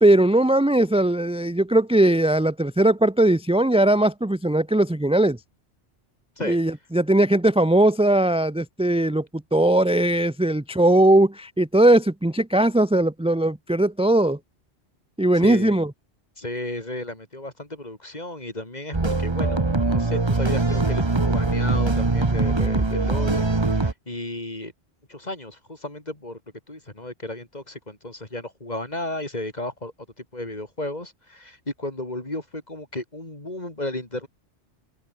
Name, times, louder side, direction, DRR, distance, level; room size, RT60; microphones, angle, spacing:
voice 1, 0.0-5.4 6.5-14.4 15.2-15.9, right 1 dB, 5° right, 0.6 m, -19 dB
voice 2, 15.3-15.8 16.4-24.7 25.1-26.4 26.7-29.9 30.2-34.3, left 1 dB, 35° left, 4.2 m, -34 dB
sound 1, 18.9-23.9, right 3 dB, 25° right, 1.3 m, -22 dB
omnidirectional pair, 1.2 m